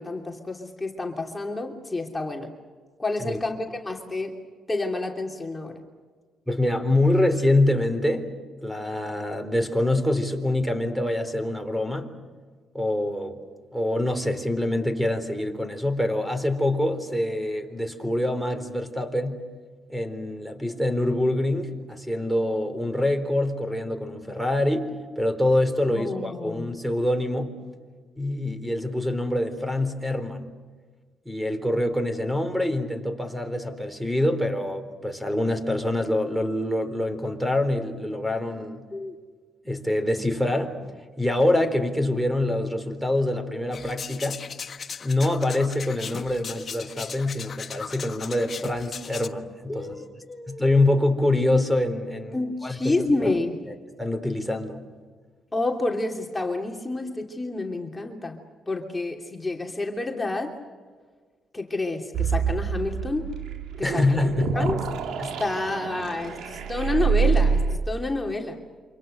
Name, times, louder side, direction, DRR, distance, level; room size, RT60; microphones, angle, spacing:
voice 1, 0.0-2.5 3.0-4.4 4.7-5.8 25.9-26.7 38.9-39.1 49.7-50.7 52.3-53.6 55.5-58.4 58.7-60.6 61.5-63.3 63.8-64.2 64.5-64.8 65.4-68.6, left 2 dB, 15° left, 1 dB, 3.1 m, -29 dB
voice 2, 6.5-8.3 8.6-12.1 12.7-13.4 13.7-19.4 19.9-27.5 28.2-30.4 31.3-38.9 39.6-40.8 41.2-44.4 45.0-49.9 50.5-52.4 52.6-52.9 53.2-53.3 53.7-54.8 63.8-64.8 65.2-65.3, left 1 dB, 5° right, 9 dB, 4.0 m, -25 dB
sound 1, 43.7-49.3, left 6 dB, 45° left, 1.3 m, -38 dB
sound 2, 62.1-67.8, right 6 dB, 75° right, 2.1 m, -26 dB
28.5 x 26.0 x 6.7 m, 1.5 s
cardioid pair, 90°, 0 cm